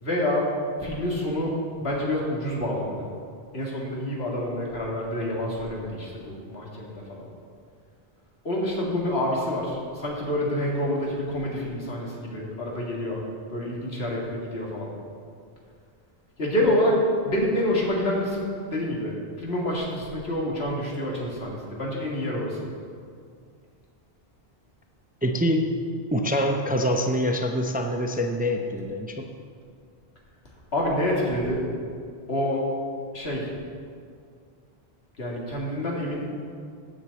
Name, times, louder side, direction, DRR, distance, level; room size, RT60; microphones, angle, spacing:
voice 1, 0.0-3.1 3.5-7.3 8.4-13.2 13.5-14.9 16.4-22.7 30.7-31.6 32.3-32.7 33.1-33.5 35.2-36.3, left 1 dB, 85° left, -3 dB, 2.2 m, -27 dB
voice 2, 25.2-25.6 26.1-29.3, equal, 10° right, 3 dB, 0.5 m, -25 dB
8.7 x 6.1 x 8.0 m, 2.2 s
omnidirectional pair, 1.0 m